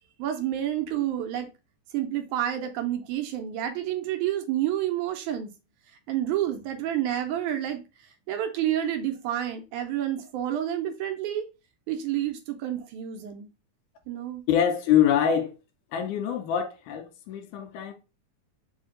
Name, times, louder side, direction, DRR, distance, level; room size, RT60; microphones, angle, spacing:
voice 1, 0.2-1.5 1.9-5.5 6.1-7.8 8.3-11.5 11.9-13.5 14.1-14.4, right 11 dB, 80° right, 1.9 m, -29 dB
voice 2, 14.5-15.5 15.9-17.9, left 9 dB, 80° left, 2.1 m, -24 dB
5.0 x 2.7 x 3.7 m
omnidirectional pair, 3.7 m